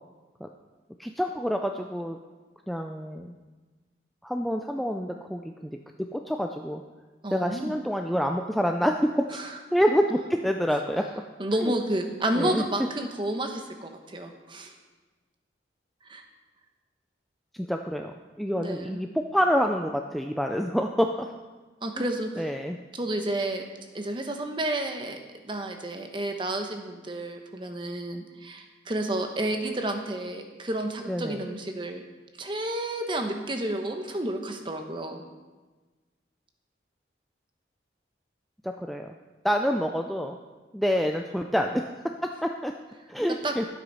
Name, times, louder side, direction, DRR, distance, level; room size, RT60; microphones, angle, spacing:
voice 1, 1.0-2.2 2.7-3.3 4.2-5.8 6.1-6.8 7.3-9.3 9.7-11.0 11.6-11.7 12.3-12.6 17.5-18.1 18.4-21.3 22.0-22.1 22.4-22.8 31.1-31.4 38.6-39.2 39.4-40.4 40.7-41.9 42.2-42.7 43.1-43.6, equal, ahead, 3 dB, 0.4 m, -27 dB
voice 2, 7.2-7.7 9.3-9.6 11.4-14.7 16.0-16.2 18.6-19.0 21.8-22.5 22.9-23.6 23.9-25.2 25.4-32.0 32.4-35.2 43.4-43.5, right 1 dB, 25° right, 5 dB, 1.0 m, -31 dB
12.5 x 8.0 x 5.6 m, 1.3 s
head